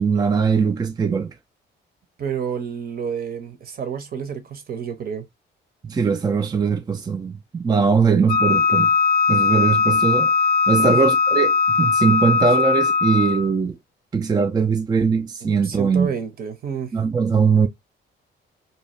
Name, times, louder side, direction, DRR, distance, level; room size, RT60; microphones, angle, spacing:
voice 1, 0.0-1.3 5.8-8.9 9.3-10.3 10.7-13.8 14.1-16.1 16.9-17.7, right 5 dB, 20° right, 0.3 m, -20 dB
voice 2, 2.2-5.2 7.9-8.0 10.8-11.0 15.6-16.9, right 6 dB, 50° right, 0.8 m, -29 dB
Wind instrument woodwind instrument, 8.3-13.5, left 4 dB, 50° left, 0.5 m, -19 dB
2.7 x 2.2 x 3.0 m
cardioid pair, 90°, 20 cm